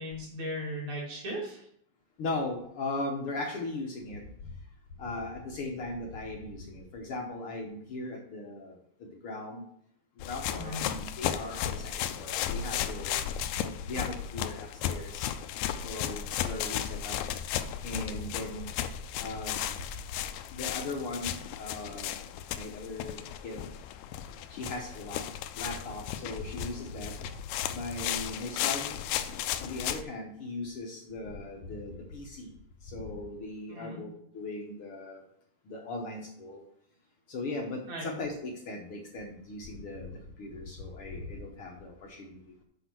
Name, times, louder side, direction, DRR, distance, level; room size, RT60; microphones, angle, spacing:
voice 1, 0.0-1.6 10.5-10.8 33.7-34.0 37.9-38.1, equal, 55° right, -2 dB, 3.7 m, -37 dB
voice 2, 2.2-4.2 5.0-9.6 10.3-13.2 13.6-15.3 15.8-17.2 17.8-18.7 19.2-19.8 20.5-23.6 24.5-25.3 25.6-27.1 27.7-29.0 29.6-32.6 32.8-35.2 35.6-36.6 37.3-42.4, left 2 dB, 70° left, 0 dB, 1.3 m, -38 dB
sound 1, 10.2-30.0, left 11 dB, 85° left, 2.5 m, -35 dB
7.9 x 6.2 x 6.1 m, 0.69 s
omnidirectional pair, 4.3 m